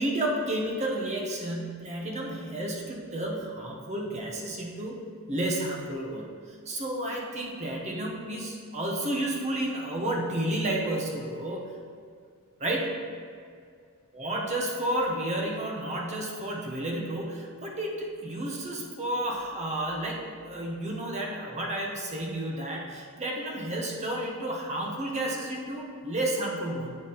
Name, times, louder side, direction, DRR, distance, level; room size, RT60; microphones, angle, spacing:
voice 1, 0.0-5.0 5.3-6.3 6.7-11.6 12.6-13.0 14.1-27.0, right 1 dB, 30° right, -1 dB, 0.9 m, -31 dB
8.3 x 3.9 x 4.3 m, 2.2 s
head